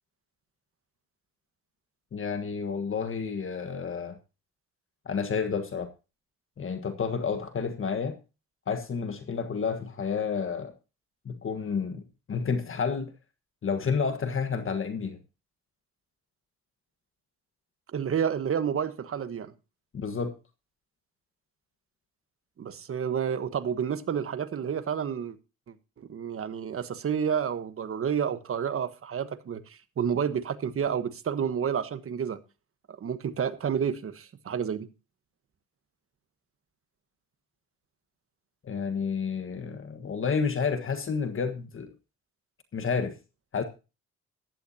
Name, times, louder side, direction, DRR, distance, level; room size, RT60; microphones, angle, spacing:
voice 1, 2.1-4.2 5.0-5.9 6.6-8.2 8.7-10.7 11.2-13.1 13.6-15.2 19.9-20.3 38.6-41.9 42.7-43.2 43.5-43.6, left 5 dB, 45° left, 1.5 m, -30 dB
voice 2, 17.9-19.5 22.6-25.4 25.7-32.4 32.9-34.9, right 7 dB, 45° right, 1.3 m, -30 dB
15.0 x 11.5 x 2.8 m
cardioid pair, 90°, 30 cm